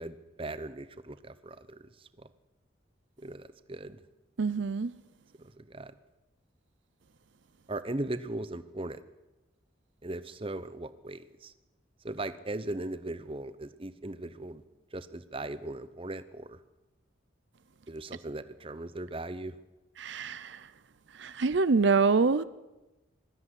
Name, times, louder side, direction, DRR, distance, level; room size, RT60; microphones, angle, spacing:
voice 1, 0.0-1.9 2.2-2.3 3.2-4.0 5.4-5.9 7.7-9.0 10.0-11.5 12.0-14.6 14.9-16.6 17.9-19.6, right 2 dB, 30° right, 0.9 m, -38 dB
voice 2, 4.4-4.9 20.0-20.6 21.2-22.4, right 4 dB, 65° right, 0.6 m, -25 dB
20.0 x 13.5 x 9.8 m
head